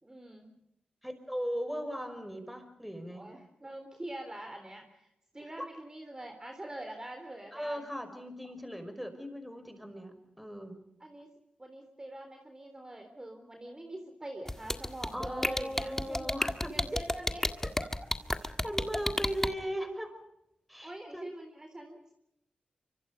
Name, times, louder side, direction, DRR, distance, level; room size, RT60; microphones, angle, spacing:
voice 1, 0.0-0.5 3.1-7.9 11.0-11.3 11.6-16.3 16.7-17.9 20.8-22.2, right 1 dB, 20° right, 4 dB, 3.7 m, -44 dB
voice 2, 1.0-3.2 5.4-5.7 7.5-10.8 15.1-16.7 18.4-20.2 20.7-21.3, equal, ahead, 8 dB, 5.6 m, -38 dB
sound 1, 14.5-19.5, left 1 dB, 15° left, 1.8 m, -30 dB
25.5 x 25.0 x 5.3 m, 0.79 s
cardioid pair, 60°, 3 cm